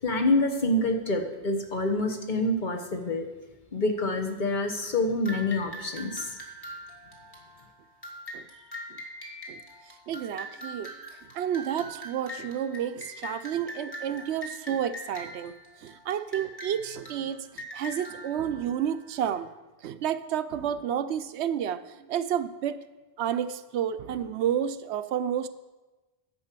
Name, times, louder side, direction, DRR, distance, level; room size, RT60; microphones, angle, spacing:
voice 1, 0.0-3.3 3.7-6.4, left 2 dB, 45° left, 4 dB, 1.2 m, -27 dB
sound 1, 5.3-19.4, equal, 20° left, 1.8 m, -43 dB
voice 2, 10.1-11.0 11.3-19.5 19.8-22.8 23.2-25.5, right 9 dB, 80° right, 12 dB, 0.9 m, -30 dB
10.5 x 5.6 x 7.4 m, 1.1 s
omnidirectional pair, 1.1 m